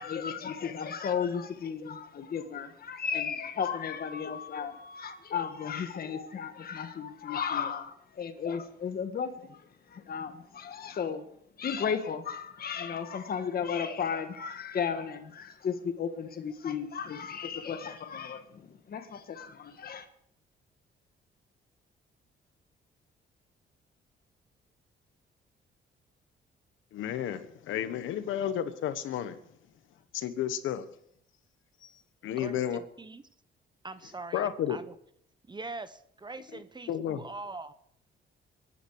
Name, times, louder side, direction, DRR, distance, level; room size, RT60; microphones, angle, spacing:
voice 1, 0.0-9.6 9.9-11.2 11.6-20.1, left 7 dB, 50° left, 7 dB, 1.5 m, -34 dB
voice 2, 26.9-29.4 30.1-30.9 32.2-32.8 34.3-34.8 36.5-36.6 36.9-37.2, left 10 dB, 85° left, 11 dB, 1.3 m, -32 dB
voice 3, 32.4-33.2 33.8-35.0 35.5-37.7, right 3 dB, 20° right, 13 dB, 0.8 m, -42 dB
23.0 x 9.9 x 4.8 m, 0.69 s
cardioid pair, 90°, 20 cm